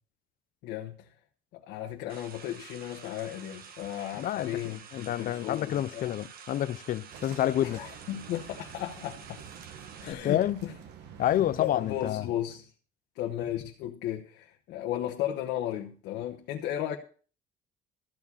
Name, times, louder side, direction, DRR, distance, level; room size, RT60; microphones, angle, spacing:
voice 1, 0.6-1.1 1.5-6.2 7.6-9.4 10.0-10.7 11.3-12.7 13.1-17.0, left 12 dB, 85° left, 1.3 m, -35 dB
sound 1, 2.1-10.1, right 7 dB, 60° right, 1.6 m, -49 dB
voice 2, 4.2-7.8 10.1-10.6 11.2-12.3, left 12 dB, 55° left, 0.5 m, -29 dB
sound 2, 7.1-12.1, right 8 dB, 80° right, 1.6 m, -48 dB
14.0 x 4.9 x 8.5 m
cardioid pair, 110°, 17 cm